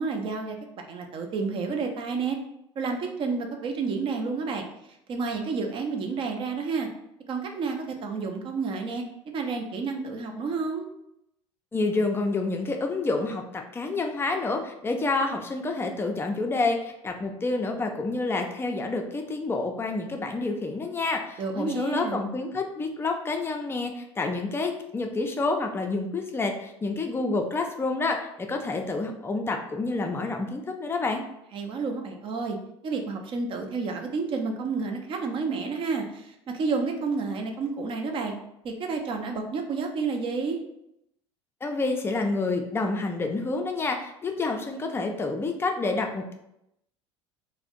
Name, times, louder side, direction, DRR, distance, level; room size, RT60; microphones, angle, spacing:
voice 1, 0.0-2.4 2.8-4.6 5.1-6.9 7.3-9.0 9.3-10.9 21.4-22.3 31.5-32.6 32.8-38.3 38.6-40.6, right 4 dB, 35° right, 4 dB, 0.5 m, -30 dB
voice 2, 11.7-31.2 41.6-46.3, left 3 dB, 15° left, 4 dB, 0.4 m, -28 dB
2.5 x 2.1 x 3.7 m, 0.81 s
figure-of-eight pair, 75°, 15 cm